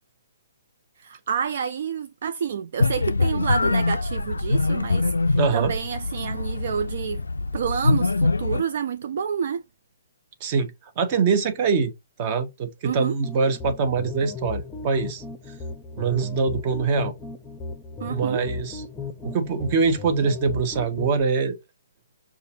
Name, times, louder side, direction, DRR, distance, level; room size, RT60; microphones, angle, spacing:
voice 1, 1.0-7.2 7.5-9.6 12.8-13.2 18.0-18.4, right 7 dB, 55° right, 0.3 m, -29 dB
sound 1, 2.8-8.6, left 3 dB, 80° left, 0.3 m, -24 dB
voice 2, 5.4-5.7 10.4-11.9 12.2-15.2 16.0-17.2 18.0-18.8 19.2-21.6, right 5 dB, 35° right, 1.0 m, -24 dB
sound 2, 13.2-21.2, left 4 dB, 10° left, 0.6 m, -36 dB
6.6 x 2.4 x 2.7 m
figure-of-eight pair, 130°, 0 cm